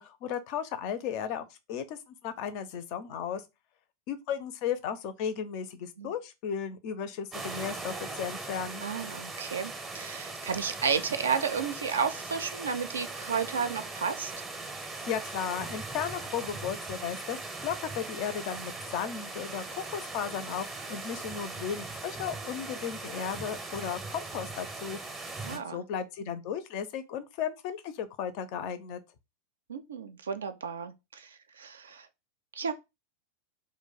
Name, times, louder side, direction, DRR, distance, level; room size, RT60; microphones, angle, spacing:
voice 1, 0.0-3.4 4.1-8.9 15.1-17.4 17.6-25.0 25.2-29.0, left 8 dB, 45° left, 0.5 m, -35 dB
sound 1, 7.3-25.6, right 3 dB, 15° right, 0.6 m, -40 dB
voice 2, 8.8-14.4 25.4-25.8 29.7-32.1 32.6-32.7, right 6 dB, 70° right, 0.4 m, -32 dB
2.4 x 2.1 x 3.8 m
figure-of-eight pair, 90°, 0 cm